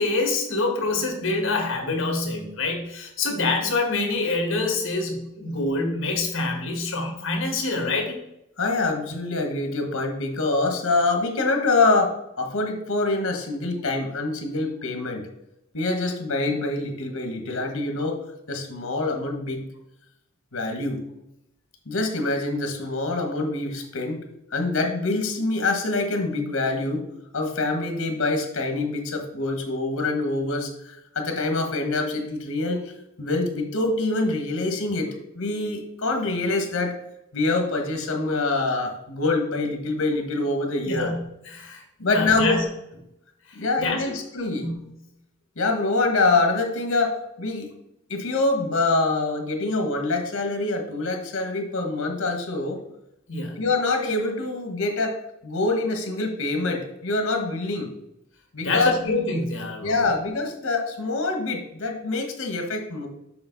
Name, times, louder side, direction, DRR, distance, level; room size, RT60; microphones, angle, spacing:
voice 1, 0.0-8.2 40.8-42.6 43.8-44.0 44.3-44.7 53.3-53.6 58.6-60.1, left 3 dB, 65° left, 2 dB, 1.9 m, -26 dB
voice 2, 8.6-15.3 15.7-18.2 18.5-19.7 20.5-21.0 21.9-24.2 24.5-27.0 27.3-32.8 33.2-35.1 35.3-36.9 37.3-41.1 42.0-42.6 43.5-44.7 45.6-47.7 48.1-52.8 53.6-55.2 55.4-57.9 58.5-59.0 59.8-63.1, left 3 dB, 85° left, 4 dB, 1.4 m, -25 dB
6.9 x 5.7 x 4.0 m, 0.84 s
head